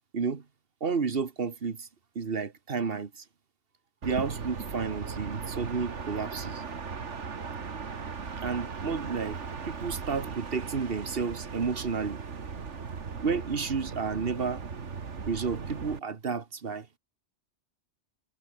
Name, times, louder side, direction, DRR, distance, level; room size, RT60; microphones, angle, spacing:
voice 1, 0.8-1.9 2.1-3.2 4.0-6.7 8.4-9.4 9.7-12.2 13.2-14.6 15.3-16.9, right 5 dB, 55° right, 1.7 m, -31 dB
sound 1, 4.0-16.0, right 5 dB, 80° right, 2.0 m, -38 dB
omnidirectional pair, 1.2 m